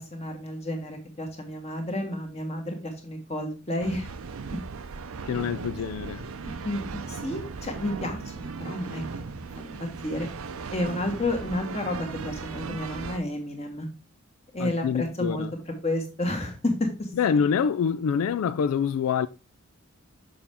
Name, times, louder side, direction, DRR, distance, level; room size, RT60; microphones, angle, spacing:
voice 1, 0.0-4.1 6.4-9.7 10.0-10.3 10.7-13.9 14.5-15.4 15.8-17.1, left 1 dB, 30° left, 1.5 m, -31 dB
sound 1, 3.8-13.2, right 5 dB, 90° right, 0.6 m, -37 dB
voice 2, 5.3-6.3 14.6-15.5 17.2-19.3, left 7 dB, 90° left, 0.3 m, -26 dB
6.9 x 5.5 x 3.5 m
head